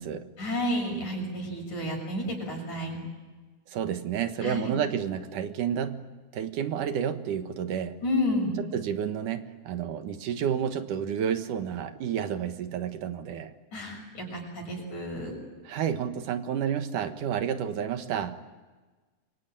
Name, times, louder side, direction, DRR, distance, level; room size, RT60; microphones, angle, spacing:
voice 1, 0.4-3.0 4.4-4.7 8.0-8.6 13.7-15.4, left 1 dB, 70° left, 2 dB, 8.1 m, -31 dB
voice 2, 3.7-6.1 6.3-8.0 8.6-13.5 15.6-18.4, right 8 dB, 90° right, 8 dB, 3.1 m, -30 dB
27.5 x 23.5 x 9.1 m, 1.3 s
omnidirectional pair, 3.5 m